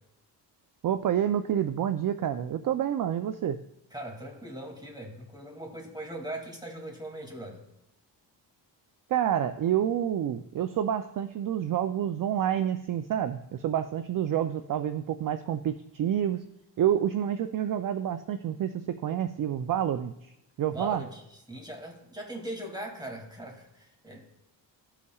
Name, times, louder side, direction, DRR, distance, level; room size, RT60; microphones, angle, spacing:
voice 1, 0.8-3.6 9.1-16.4 16.8-20.1 20.6-21.0, right 10 dB, 45° right, 10 dB, 0.5 m, -28 dB
voice 2, 3.9-7.6 20.7-24.3, right 1 dB, 10° right, 1 dB, 2.4 m, -40 dB
15.5 x 5.6 x 2.4 m, 0.83 s
cardioid pair, 75°, 45 cm